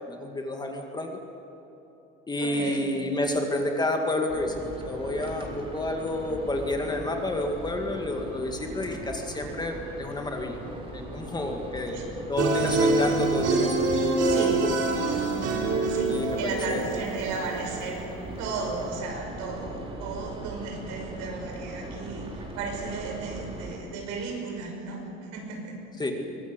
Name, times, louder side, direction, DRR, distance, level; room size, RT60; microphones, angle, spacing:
voice 1, 0.1-1.2 2.3-4.6 4.8-10.6 10.9-14.3 14.6-14.7 16.1-16.4 16.7-17.1 26.0-26.1, left 2 dB, 15° left, 2 dB, 2.2 m, -30 dB
voice 2, 2.4-2.9 11.9-12.0 14.2-14.6 15.8-18.0 18.4-25.8, right 4 dB, 75° right, 2 dB, 6.0 m, -34 dB
sound 1, 4.3-23.8, right 1 dB, 20° right, 4.0 m, -40 dB
sound 2, 12.4-17.6, right 3 dB, 55° right, 4.1 m, -25 dB
23.5 x 19.5 x 8.2 m, 3.0 s
cardioid pair, 150°, 30 cm